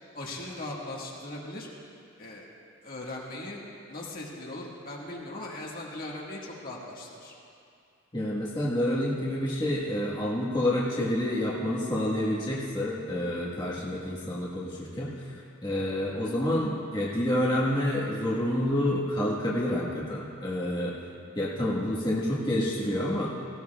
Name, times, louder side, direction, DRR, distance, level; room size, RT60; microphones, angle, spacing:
voice 1, 0.1-1.7 2.2-2.5 2.8-3.6 3.9-7.4, left 1 dB, 45° left, -3 dB, 1.7 m, -39 dB
voice 2, 8.1-15.3 15.6-20.9 21.3-23.3, left 1 dB, 20° left, -6 dB, 1.4 m, -28 dB
18.0 x 16.0 x 2.4 m, 2.5 s
head